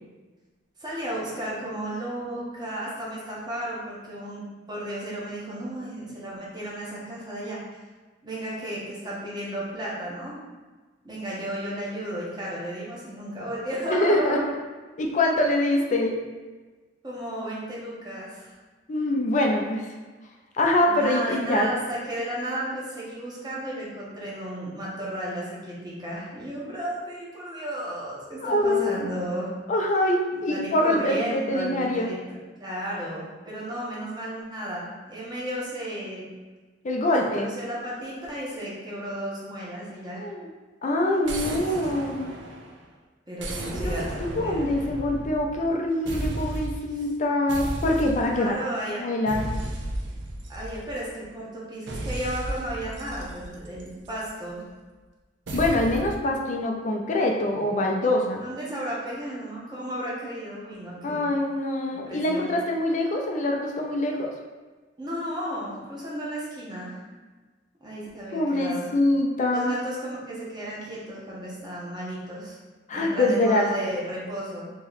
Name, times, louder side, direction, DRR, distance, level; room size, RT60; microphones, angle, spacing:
voice 1, 0.8-7.8 8.2-10.4 11.0-14.4 17.0-18.5 20.8-29.5 30.5-32.2 32.6-36.3 37.2-40.3 43.3-44.7 48.3-49.1 50.5-54.6 58.3-61.3 61.8-62.5 65.0-67.0 67.8-68.9 69.5-72.6 72.9-74.7, equal, 25° right, -6 dB, 1.0 m, -33 dB
voice 2, 13.9-14.4 15.0-16.1 18.9-19.9 20.5-21.7 28.4-29.0 29.7-32.1 36.8-37.5 40.2-40.5 40.8-42.3 43.8-44.0 44.4-48.5 49.0-49.4 55.5-58.4 61.0-64.3 68.3-69.7 72.9-73.6, left 1 dB, 40° left, 1 dB, 0.5 m, -24 dB
sound 1, 41.2-42.8 43.4-45.7 46.1-46.9 47.5-48.5 49.3-51.1 51.9-54.3 55.5-56.2, right 1 dB, 70° right, 0.6 m, -34 dB
3.0 x 2.9 x 4.0 m, 1.3 s
head